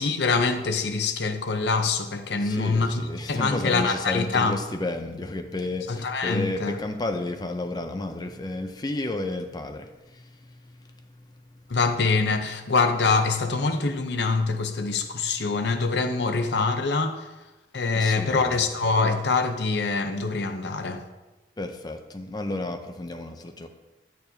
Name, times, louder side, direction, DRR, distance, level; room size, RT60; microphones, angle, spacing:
voice 1, 0.0-4.6 5.9-6.7 11.7-17.3 17.7-21.0, left 4 dB, 70° left, 0.7 m, -24 dB
voice 2, 2.4-11.3 11.5-11.6 17.9-18.6 21.6-23.7, left 2 dB, 25° left, 0.4 m, -32 dB
10.5 x 6.8 x 2.8 m
head